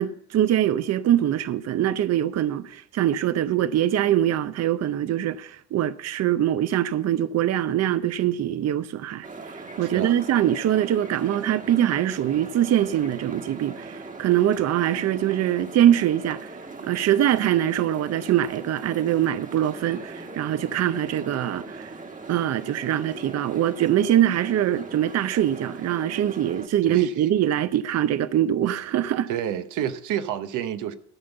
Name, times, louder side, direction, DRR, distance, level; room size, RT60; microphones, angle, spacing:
voice 1, 0.0-22.0 22.3-29.3, right 11 dB, 55° right, 0.6 m, -23 dB
sound 1, 9.2-26.7, right 3 dB, 25° right, 1.3 m, -40 dB
voice 2, 9.8-10.2 26.8-27.1 29.3-30.9, right 10 dB, 85° right, 0.8 m, -29 dB
12.5 x 5.2 x 7.9 m
cardioid pair, 90°, 30 cm